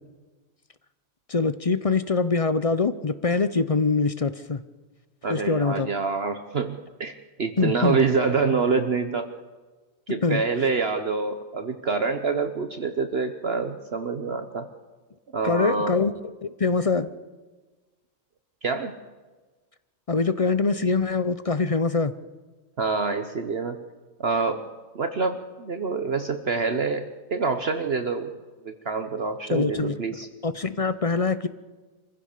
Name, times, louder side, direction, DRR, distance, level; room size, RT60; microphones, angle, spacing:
voice 1, 1.3-4.6 5.3-5.9 7.6-8.0 10.2-10.4 15.4-16.1 16.4-17.1 20.1-22.1 29.5-29.9 30.4-31.5, left 4 dB, 40° left, 13 dB, 0.5 m, -24 dB
voice 2, 5.2-9.3 10.1-14.7 15.3-16.0 18.6-18.9 22.8-23.8 24.2-24.6 24.9-27.1 27.3-28.3 28.6-30.3, right 4 dB, 50° right, 7 dB, 1.2 m, -26 dB
25.0 x 15.5 x 6.7 m, 1.3 s
omnidirectional pair, 1.4 m